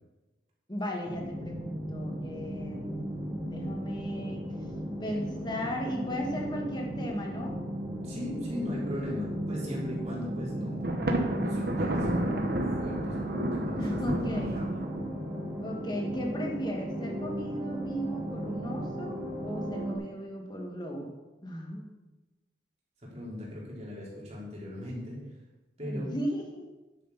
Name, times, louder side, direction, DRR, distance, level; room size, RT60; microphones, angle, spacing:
voice 1, 0.7-4.4 5.0-7.6 13.7-14.7 15.6-22.0 25.8-26.6, equal, 25° left, 0 dB, 1.8 m, -36 dB
sound 1, 1.1-20.0, right 1 dB, 15° right, 1.4 m, -36 dB
voice 2, 8.0-11.0 11.4-14.8 23.0-25.2 25.8-26.2, left 1 dB, 35° right, -5 dB, 3.5 m, -38 dB
Thunder, 10.8-15.4, right 1 dB, 55° right, 1.2 m, -31 dB
10.0 x 9.0 x 4.1 m, 1.1 s
head